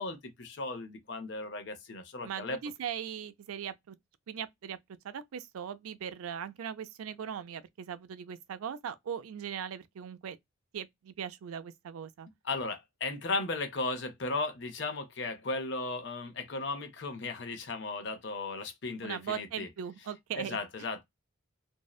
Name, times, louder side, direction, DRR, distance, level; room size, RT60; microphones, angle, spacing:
voice 1, 0.0-2.6 12.4-19.7 20.4-21.0, left 3 dB, 55° left, 0.6 m, -36 dB
voice 2, 2.2-3.9 4.3-4.8 5.0-10.4 10.7-12.3 19.0-20.6, right 8 dB, 85° right, 0.4 m, -39 dB
2.6 x 2.1 x 2.3 m
head